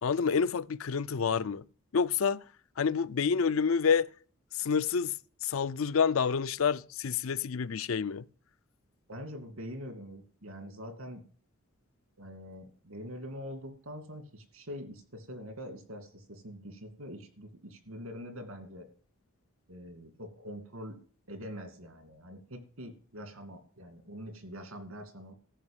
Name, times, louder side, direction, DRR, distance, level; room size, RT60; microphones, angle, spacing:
voice 1, 0.0-1.6 1.9-2.4 2.8-4.1 4.6-5.1 5.4-8.2, left 6 dB, 70° left, 0.5 m, -28 dB
voice 2, 9.1-11.2 12.2-18.9 19.7-21.0 21.3-25.3, equal, 85° right, 2.4 m, -44 dB
13.5 x 5.4 x 8.9 m
head